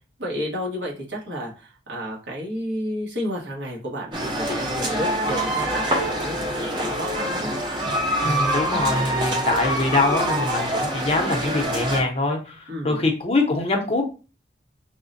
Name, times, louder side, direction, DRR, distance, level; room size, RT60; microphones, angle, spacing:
voice 1, 0.2-7.5 12.7-13.0, equal, 75° right, -2 dB, 1.2 m, -31 dB
sound 1, 4.1-12.0, right 1 dB, 25° right, 0.6 m, -25 dB
voice 2, 8.2-14.0, left 2 dB, 35° left, 3 dB, 0.6 m, -24 dB
5.6 x 2.1 x 2.5 m, 0.34 s
head